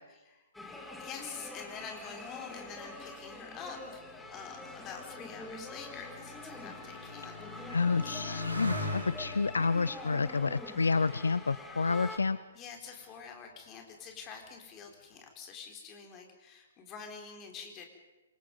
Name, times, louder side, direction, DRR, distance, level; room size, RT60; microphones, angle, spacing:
voice 1, 0.0-0.5 1.0-4.0 4.3-8.5 11.9-12.1 12.5-17.9, left 6 dB, 20° left, 3 dB, 4.2 m, -47 dB
sound 1, 0.5-12.2, left 2 dB, 5° left, 2.3 m, -45 dB
Motorcycle, 2.7-11.7 12.5-13.0, left 2 dB, 90° left, 6.5 m, -43 dB
voice 2, 7.7-12.4, left 4 dB, 70° left, 16 dB, 0.7 m, -29 dB
28.0 x 23.5 x 5.4 m, 1.2 s
figure-of-eight pair, 125°, 0 cm